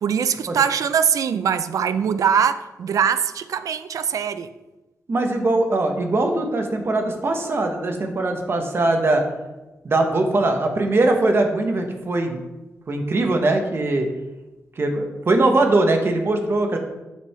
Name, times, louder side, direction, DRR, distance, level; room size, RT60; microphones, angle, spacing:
voice 1, 0.0-4.5, right 7 dB, 85° right, 0.4 m, -22 dB
voice 2, 5.1-9.2 9.8-12.4 12.9-14.1 14.8-16.8, right 2 dB, 45° right, 1.1 m, -21 dB
7.4 x 5.4 x 4.3 m
wide cardioid pair, 130°, 6 cm